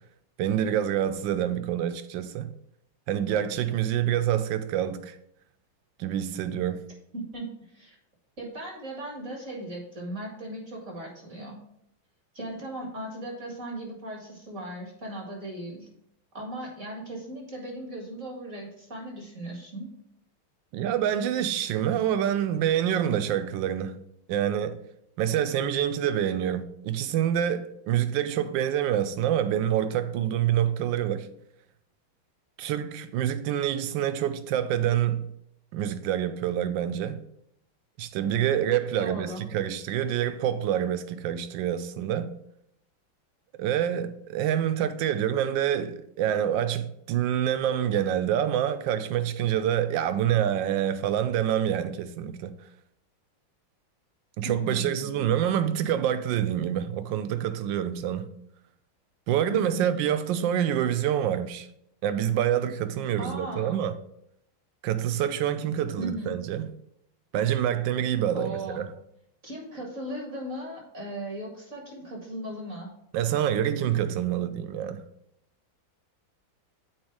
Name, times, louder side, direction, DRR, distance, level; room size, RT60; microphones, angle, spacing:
voice 1, 0.4-2.5 3.1-5.2 6.0-6.9 20.7-24.0 24.3-24.8 25.2-31.3 32.6-35.3 35.7-37.2 38.0-42.3 43.6-52.5 54.4-58.3 59.3-61.7 62.0-63.9 64.8-66.7 67.3-68.9 73.1-75.0, right 10 dB, 70° right, 1.2 m, -27 dB
voice 2, 7.1-8.0 8.4-11.6 12.3-15.9 16.3-19.9 39.0-39.4 54.4-55.1 59.5-60.0 63.2-63.8 66.0-66.4 68.3-68.8 69.4-72.9, right 1 dB, 35° right, 2.1 m, -37 dB
7.4 x 4.6 x 4.6 m
omnidirectional pair, 2.3 m